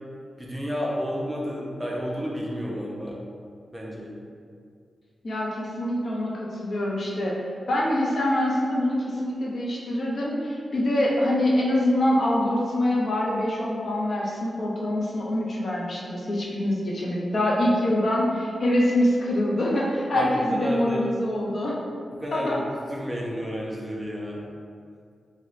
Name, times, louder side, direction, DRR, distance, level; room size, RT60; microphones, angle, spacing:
voice 1, 0.4-3.2 3.7-4.1 20.1-21.1 22.1-22.6 22.9-24.4, equal, 10° right, -4 dB, 0.5 m, -31 dB
voice 2, 5.2-7.3 7.7-21.8 22.3-22.6, left 1 dB, 50° left, -4 dB, 0.6 m, -25 dB
3.1 x 2.7 x 2.5 m, 2.3 s
wide cardioid pair, 130°, 0 cm